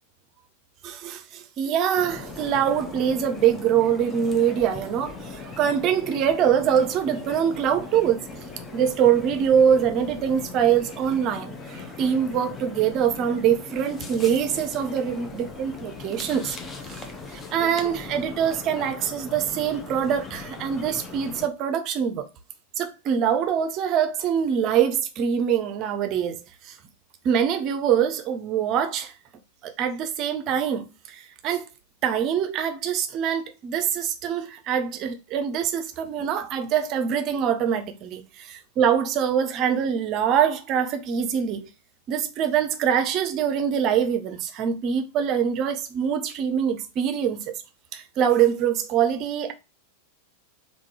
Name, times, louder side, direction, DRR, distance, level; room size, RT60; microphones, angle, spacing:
voice 1, 0.8-8.2 8.7-16.6 17.0-17.1 17.3-22.3 22.8-26.4 26.6-26.7 27.2-29.1 29.6-31.7 32.0-41.7 42.1-47.6 47.9-49.5, right 8 dB, 35° right, 0.6 m, -24 dB
sound 1, 2.0-21.5, left 3 dB, 20° left, 0.8 m, -39 dB
3.6 x 2.6 x 4.7 m
figure-of-eight pair, 90°, 0 cm